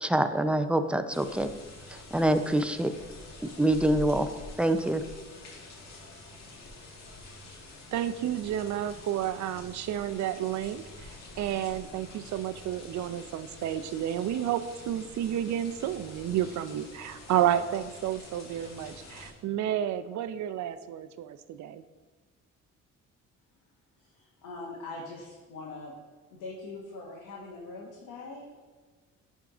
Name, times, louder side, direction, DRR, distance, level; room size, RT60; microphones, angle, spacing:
voice 1, 0.0-1.5 2.1-2.9 3.6-4.3 4.6-5.0, right 1 dB, 5° right, 9 dB, 0.4 m, -25 dB
sound 1, 1.1-19.3, left 2 dB, 60° left, 1.7 m, -47 dB
voice 2, 7.9-11.1 11.4-21.8, right 11 dB, 70° right, 13 dB, 0.5 m, -31 dB
voice 3, 24.0-26.0 26.3-28.6, left 3 dB, 85° left, -4 dB, 1.4 m, -42 dB
10.5 x 3.7 x 3.8 m, 1.4 s
cardioid pair, 90°, 30 cm